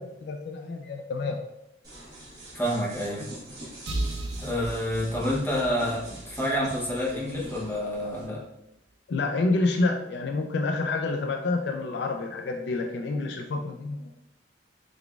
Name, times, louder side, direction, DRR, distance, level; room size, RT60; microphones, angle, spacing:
voice 1, 0.0-1.4 9.1-14.1, left 3 dB, 60° left, 3 dB, 0.3 m, -28 dB
sound 1, 1.8-8.2, right 1 dB, 20° right, 1.1 m, -45 dB
voice 2, 2.5-3.3 4.4-8.4, equal, 10° left, -5 dB, 0.8 m, -28 dB
sound 2, 3.9-7.5, right 2 dB, 70° right, 0.5 m, -36 dB
3.8 x 3.4 x 2.3 m, 0.83 s
head